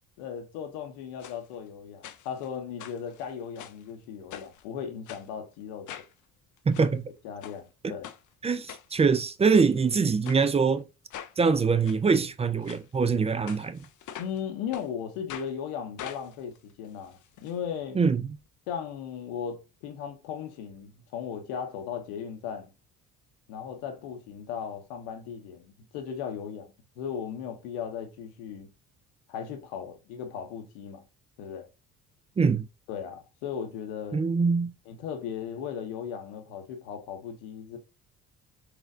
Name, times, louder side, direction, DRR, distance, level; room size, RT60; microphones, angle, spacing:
voice 1, 0.2-6.0 7.2-8.1 14.2-18.0 18.7-22.7 23.5-28.7 29.3-31.0 31.4-31.7 32.9-34.2 34.9-37.8, left 7 dB, 90° left, 0.7 m, -37 dB
sound 1, 1.2-1.4 2.0-2.5 2.8-3.8 4.3-4.6 5.1-5.3 5.9-6.1 6.6-6.9 7.4-7.6 8.0-8.2 8.7-9.1 9.5-9.7 10.2-10.4 11.1-11.3 11.8-12.0 12.6-12.8 13.5-14.4 14.7-14.9 15.3-15.5 16.0-17.5 17.8-17.9 18.1-18.2, left 10 dB, 50° left, 0.5 m, -43 dB
voice 2, 6.7-7.0 8.4-10.8 11.4-13.8 18.0-18.4 32.4-32.7 34.1-34.7, right 5 dB, 20° right, 0.3 m, -24 dB
4.0 x 2.4 x 2.6 m
supercardioid pair, 65°, 39 cm